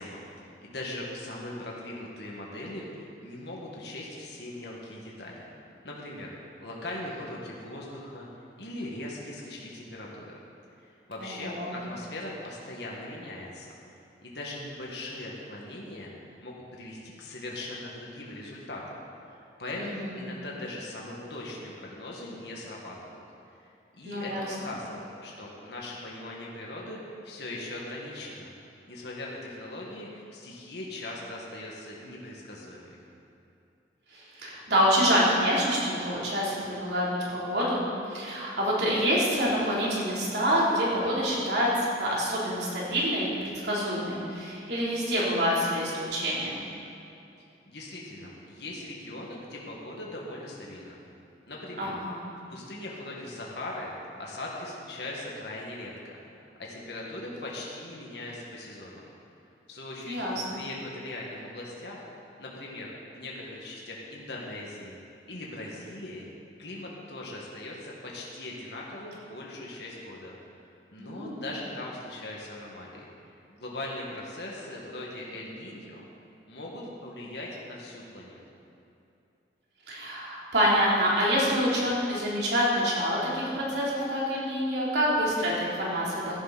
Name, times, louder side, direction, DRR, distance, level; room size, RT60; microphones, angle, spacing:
voice 1, 0.0-5.4 5.8-8.3 8.6-10.4 10.8-13.7 14.2-19.0 19.3-23.2 23.6-28.5 28.9-33.0 47.7-51.0 51.5-52.0 52.5-53.9 54.2-59.1 59.7-62.0 62.4-65.0 65.2-66.2 66.6-70.4 70.6-76.0 76.5-78.4, left 1 dB, 65° left, -3 dB, 1.9 m, -40 dB
voice 2, 11.2-11.8 19.7-20.2 24.0-24.4 34.1-46.6 51.8-52.2 60.1-60.3 71.0-71.4 79.9-86.4, equal, 65° right, -6 dB, 3.5 m, -27 dB
16.0 x 11.0 x 4.2 m, 2.7 s
head